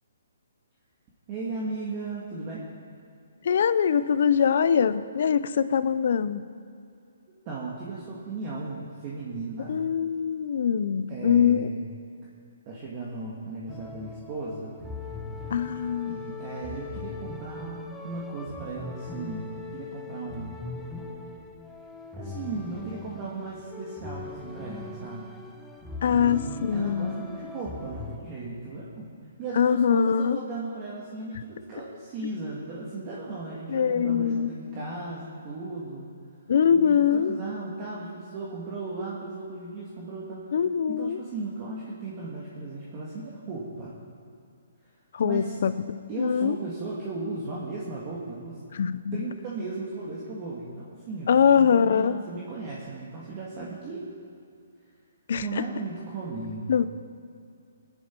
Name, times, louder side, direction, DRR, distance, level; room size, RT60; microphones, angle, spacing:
voice 1, 1.3-2.6 7.3-9.8 11.1-12.0 12.6-14.7 16.1-20.6 22.2-25.3 26.1-29.1 29.4-36.1 36.7-40.5 40.9-44.0 45.2-45.6 46.1-48.6 49.1-54.1 55.4-56.8, right 3 dB, 25° right, -5 dB, 1.7 m, -36 dB
voice 2, 3.4-6.4 9.7-11.7 15.5-16.2 26.0-27.2 29.6-30.4 33.7-34.5 36.5-37.4 40.5-41.2 45.1-45.8 46.2-46.6 48.7-49.1 51.3-52.2 55.3-55.4 56.7-56.8, left 7 dB, 50° left, 14 dB, 0.6 m, -23 dB
sound 1, 13.7-28.2, left 3 dB, 5° left, 0.7 m, -40 dB
21.0 x 10.5 x 4.5 m, 2.3 s
hypercardioid pair, 170°, 0 cm